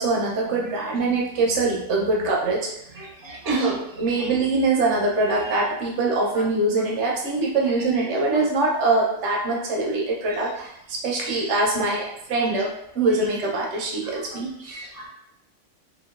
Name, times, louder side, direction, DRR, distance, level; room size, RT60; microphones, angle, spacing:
voice 1, 0.0-2.7 2.9-3.0 3.5-12.7 12.9-14.8, right 3 dB, 65° right, -2 dB, 0.9 m, -23 dB
voice 2, 3.0-3.7 4.1-4.3 6.3-6.4 8.3-8.4 11.2-11.4 12.3-12.5 14.0-14.1 14.6-15.1, right 1 dB, 25° right, -5 dB, 0.4 m, -40 dB
2.9 x 2.3 x 2.3 m, 0.78 s
omnidirectional pair, 1.4 m